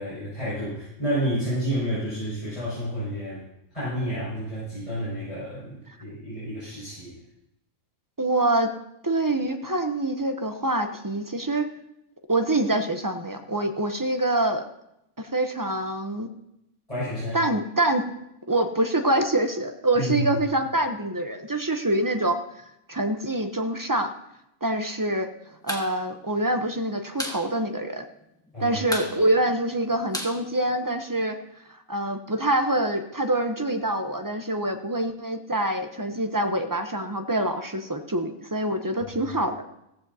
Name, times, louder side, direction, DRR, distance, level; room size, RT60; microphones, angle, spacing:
voice 1, 0.0-3.4 3.7-7.1 16.9-17.4 19.9-20.3 28.5-28.8, equal, 25° left, -11 dB, 5.6 m, -30 dB
voice 2, 8.2-8.7 9.0-11.7 12.3-14.6 15.2-16.3 17.3-18.0 18.5-22.4 22.9-24.1 24.6-25.3 25.6-28.0 28.6-31.4 31.7-39.6, right 1 dB, 25° right, 6 dB, 0.4 m, -25 dB
sound 1, 25.5-25.9 26.2-26.3 26.6-27.4 27.7-27.8 28.1-28.5 28.8-31.2, equal, 5° left, 1.3 m, -34 dB
16.0 x 14.5 x 2.7 m, 0.83 s
omnidirectional pair, 1.5 m